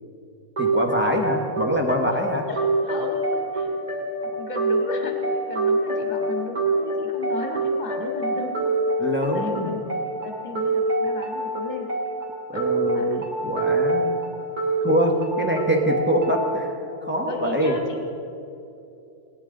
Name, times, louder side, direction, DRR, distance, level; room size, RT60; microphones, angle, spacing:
voice 1, 0.6-2.5 9.0-9.8 12.5-14.2 14.8-16.7 17.0-17.8, equal, 10° right, 1 dB, 1.1 m, -24 dB
sound 1, 0.6-16.5, right 2 dB, 30° right, 2.7 m, -26 dB
voice 2, 2.5-3.7 4.2-8.7 9.3-11.9 12.5-13.3 17.2-18.0, left 2 dB, 35° left, 1 dB, 1.8 m, -35 dB
19.5 x 9.9 x 3.9 m, 2.8 s
omnidirectional pair, 1.4 m